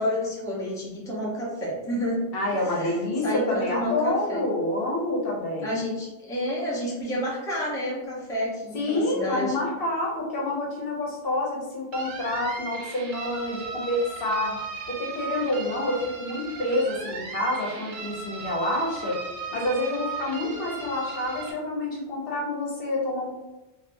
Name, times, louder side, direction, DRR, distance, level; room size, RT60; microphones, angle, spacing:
voice 1, 0.0-2.2 2.7-2.9 3.2-4.5 5.6-9.5, equal, 5° left, -5 dB, 0.6 m, -29 dB
voice 2, 2.3-5.8 8.7-14.6 14.9-19.2 19.5-23.3, left 1 dB, 65° left, -2 dB, 0.9 m, -28 dB
sound 1, 11.9-21.5, right 4 dB, 60° right, 0.6 m, -37 dB
3.4 x 2.4 x 2.5 m, 1.0 s
omnidirectional pair, 1.1 m